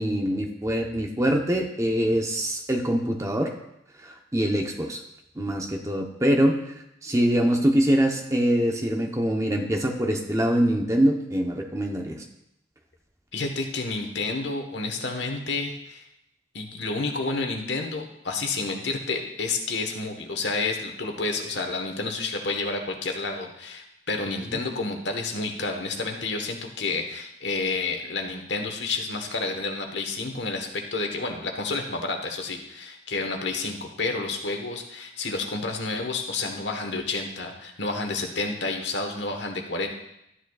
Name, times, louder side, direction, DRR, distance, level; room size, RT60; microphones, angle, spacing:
voice 1, 0.0-3.5 4.0-5.0 5.4-6.6 7.0-12.2, equal, 15° right, 3 dB, 0.8 m, -24 dB
voice 2, 13.3-16.0 16.5-39.9, left 3 dB, 75° left, 3 dB, 1.2 m, -30 dB
12.5 x 9.2 x 2.4 m, 0.81 s
head